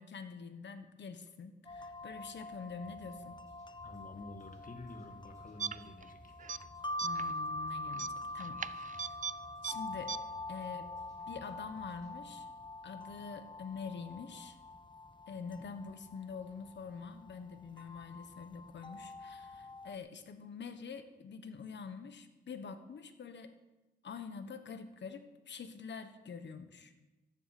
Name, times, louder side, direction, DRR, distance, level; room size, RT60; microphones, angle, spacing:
voice 1, 0.0-3.4 7.0-9.1 9.6-10.2 10.5-10.9 11.3-12.5 12.8-14.6 15.3-23.5 24.0-27.0, left 5 dB, 80° left, 9 dB, 1.3 m, -46 dB
sound 1, 1.7-20.0, left 2 dB, 25° left, 0.7 m, -45 dB
sound 2, 2.8-12.1, right 1 dB, 20° right, 5.7 m, -61 dB
voice 2, 3.8-6.3, left 2 dB, 50° left, 4 dB, 1.8 m, -49 dB
sound 3, 5.6-6.1 6.4-6.6 7.0-7.3 7.9-9.3 9.6-9.7 10.1-10.2, right 7 dB, 45° right, 0.5 m, -39 dB
13.0 x 10.0 x 6.0 m, 1.1 s
cardioid pair, 70°, 18 cm